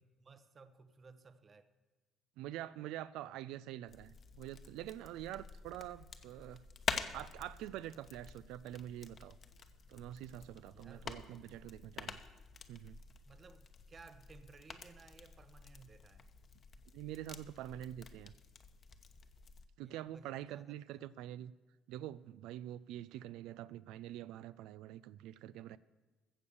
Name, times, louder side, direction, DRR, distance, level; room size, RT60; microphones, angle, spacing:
voice 1, 0.0-1.7 10.7-11.1 13.2-16.3 19.8-21.1, right 4 dB, 35° right, 11 dB, 0.8 m, -59 dB
voice 2, 2.4-6.6 7.1-9.4 9.9-12.2 12.7-13.0 16.9-18.3 19.8-21.5 21.9-25.8, right 13 dB, 85° right, 16 dB, 0.3 m, -46 dB
sound 1, 3.9-19.7, left 5 dB, 40° left, 0.9 m, -48 dB
15.0 x 6.9 x 7.0 m, 1.2 s
cardioid pair, 110°, 0 cm